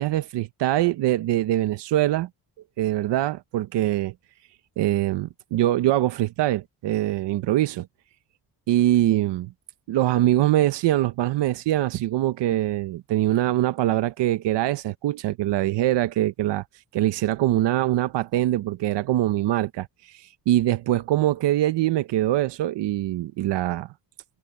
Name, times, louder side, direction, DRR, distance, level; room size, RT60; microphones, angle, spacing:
voice 1, 0.0-2.3 2.8-4.1 4.8-7.9 8.7-9.5 9.9-16.6 16.9-23.9, right 14 dB, 75° right, 0.8 m, -23 dB
cardioid pair, 170°, 42 cm